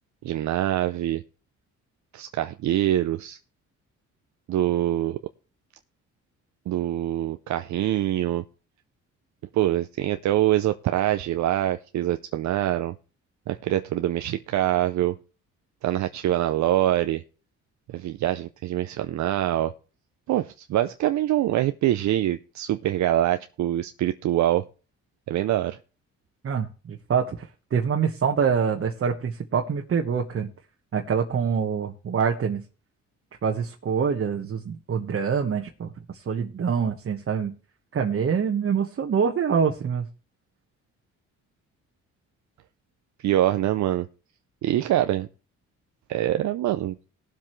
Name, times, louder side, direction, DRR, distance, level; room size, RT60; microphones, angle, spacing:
voice 1, 0.2-1.2 2.1-3.4 4.5-5.2 6.7-8.4 9.5-12.9 13.5-15.2 15.8-17.2 17.9-19.7 20.3-24.7 25.3-25.8 43.2-44.1 44.6-45.3 46.1-47.0, right 13 dB, 70° right, 9 dB, 0.6 m, -24 dB
voice 2, 26.4-27.5 27.7-30.5 30.9-32.6 33.4-37.5 37.9-40.0, right 6 dB, 45° right, 2 dB, 1.4 m, -25 dB
18.5 x 7.6 x 3.2 m, 0.36 s
cardioid pair, 90°, 30 cm